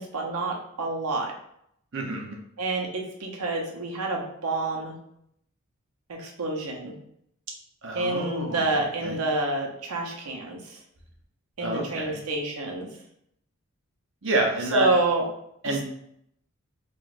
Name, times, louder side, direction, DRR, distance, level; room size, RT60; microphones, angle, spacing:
voice 1, 0.0-1.3 2.6-4.9 6.1-6.9 7.9-10.8 11.6-12.9 14.7-15.3 15.6-15.8, right 2 dB, 90° right, 0 dB, 0.8 m, -28 dB
voice 2, 1.9-2.4 7.8-8.7 9.0-9.2 11.6-12.2 14.2-14.9 15.6-15.8, right 2 dB, 55° right, 0 dB, 0.7 m, -29 dB
4.7 x 2.4 x 2.5 m, 0.72 s
head